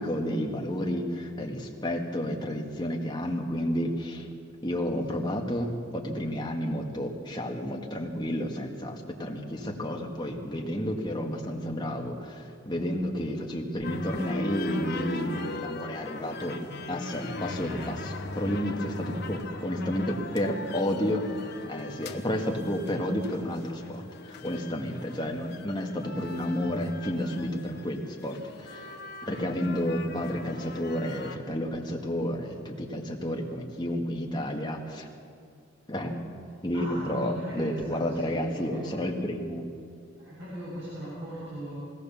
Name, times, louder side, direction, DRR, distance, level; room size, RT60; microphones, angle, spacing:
voice 1, 0.0-4.3 4.6-16.6 16.9-21.4 21.7-28.9 29.2-35.1 35.9-36.2 36.6-39.6, equal, 20° left, 0 dB, 1.9 m, -31 dB
sound 1, 13.8-31.4, left 2 dB, 55° left, 1.2 m, -40 dB
voice 2, 17.5-19.4 36.5-39.0 40.2-41.7, equal, 60° right, -8 dB, 7.4 m, -40 dB
21.0 x 17.5 x 7.1 m, 2.3 s
head